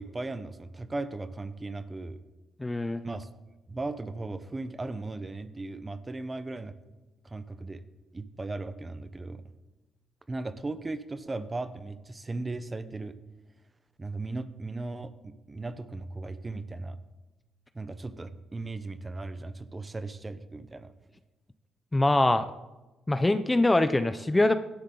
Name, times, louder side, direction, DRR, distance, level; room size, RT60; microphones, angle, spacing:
voice 1, 0.0-2.2 3.0-3.3 3.7-6.7 7.2-7.8 8.1-9.4 10.3-13.2 14.0-17.0 17.7-20.9, right 2 dB, 20° right, 12 dB, 0.9 m, -37 dB
voice 2, 2.6-3.0 21.9-22.5 23.1-24.5, left 2 dB, 15° left, 11 dB, 0.6 m, -23 dB
16.5 x 12.0 x 3.9 m, 1.1 s
cardioid pair, 90°, 0 cm